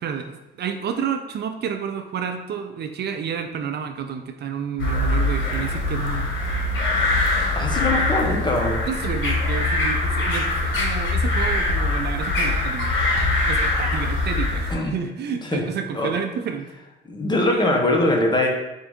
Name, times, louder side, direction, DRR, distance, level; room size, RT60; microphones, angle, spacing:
voice 1, 0.0-6.3 8.9-12.9 13.4-16.7, right 7 dB, 55° right, 6 dB, 0.4 m, -30 dB
sound 1, 4.8-14.7, left 2 dB, 75° left, 1.0 m, -23 dB
voice 2, 7.5-8.8 14.7-15.0 15.4-15.6 15.9-16.1 17.1-18.5, left 2 dB, 20° left, 0 dB, 0.9 m, -22 dB
4.5 x 2.6 x 3.5 m, 0.98 s
cardioid pair, 90°, 20 cm